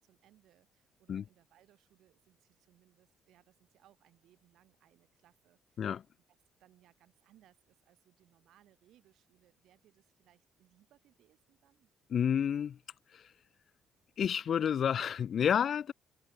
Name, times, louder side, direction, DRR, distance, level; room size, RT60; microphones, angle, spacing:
voice 1, 0.0-5.9 6.6-11.9, right 13 dB, 65° right, 7.3 m, -67 dB
voice 2, 12.1-12.8 13.1-13.3 14.2-15.9, left 8 dB, 40° left, 0.3 m, -30 dB
cardioid pair, 170°, 0 cm